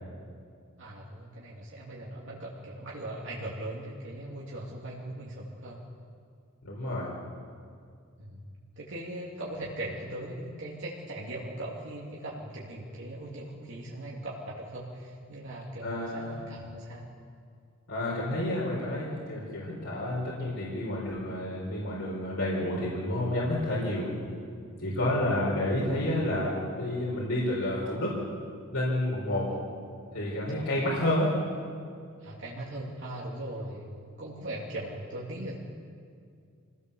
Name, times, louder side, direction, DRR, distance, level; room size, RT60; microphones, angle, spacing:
voice 1, 0.8-5.8 8.2-8.5 8.8-17.1 25.0-25.4 29.5-29.6 30.5-30.7 32.2-33.9 34.2-35.6, right 1 dB, 60° right, -5 dB, 2.8 m, -39 dB
voice 2, 6.6-7.1 15.8-16.4 17.9-24.1 24.8-28.2 28.7-29.5 30.1-31.3, left 1 dB, 90° left, -5 dB, 4.6 m, -30 dB
25.5 x 18.0 x 7.0 m, 2.3 s
head